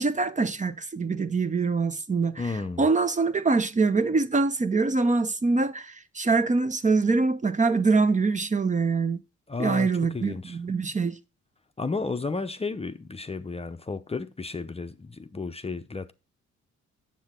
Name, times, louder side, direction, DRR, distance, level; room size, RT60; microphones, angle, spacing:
voice 1, 0.0-2.5 2.8-9.2 9.6-11.2, right 4 dB, 25° right, 0.7 m, -24 dB
voice 2, 2.4-2.8 9.5-10.6 11.8-16.1, left 4 dB, 20° left, 0.7 m, -33 dB
7.8 x 7.4 x 3.6 m
cardioid pair, 85°, 29 cm